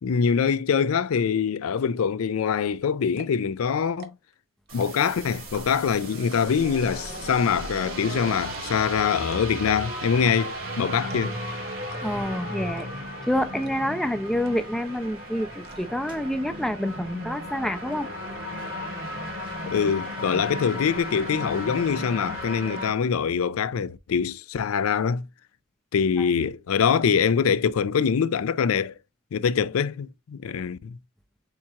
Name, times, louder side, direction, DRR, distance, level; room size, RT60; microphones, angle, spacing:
voice 1, 0.0-4.1 4.7-11.4 19.7-25.3 25.9-28.9 29.3-31.0, left 6 dB, 85° left, 0.4 m, -24 dB
sound 1, 2.6-2.7 3.1-3.4 3.9-4.3 4.7-5.1 5.5-5.9 6.3-6.7 7.0-7.1 7.4-7.5 7.8-8.1 8.5-8.6 9.2-9.7 10.2-10.4 10.6-10.7 11.1-11.4 11.9-12.3 12.8-13.1 13.6-13.7 14.1-14.2 14.4-14.9 15.1-15.8, right 3 dB, 50° right, 0.9 m, -45 dB
sound 2, 4.7-22.9, equal, 70° right, 2.6 m, -35 dB
voice 2, 12.0-12.9 13.3-18.1 26.2-26.3, equal, ahead, 0.4 m, -27 dB
sound 3, 14.2-22.4, right 1 dB, 20° right, 1.2 m, -49 dB
7.1 x 2.9 x 2.4 m
head